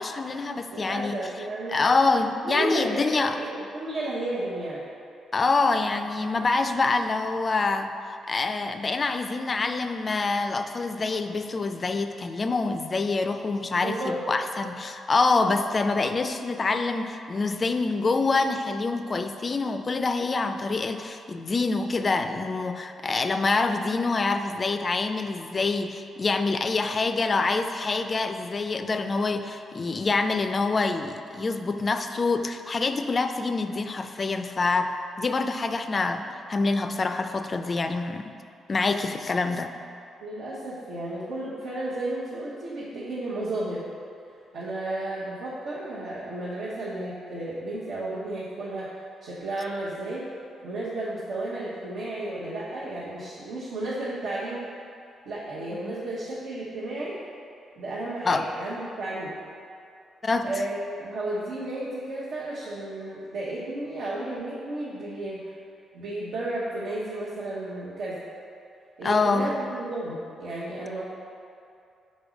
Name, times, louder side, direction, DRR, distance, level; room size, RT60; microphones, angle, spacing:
voice 1, 0.0-1.2 1.7-3.4 5.3-34.9 35.2-36.2 36.5-38.3 38.7-39.7 55.8-55.9 58.3-58.5 60.2-60.5 69.0-69.5, left 3 dB, 35° left, 8 dB, 0.3 m, -26 dB
voice 2, 0.7-1.8 2.4-4.8 13.8-14.3 40.2-43.9 44.5-48.9 49.2-50.3 50.6-54.6 55.3-57.2 57.8-59.3 60.4-65.5 65.9-68.2 69.0-71.0, right 1 dB, 75° right, -7 dB, 1.0 m, -33 dB
5.2 x 4.1 x 5.0 m, 2.5 s
cardioid pair, 95°, 0 cm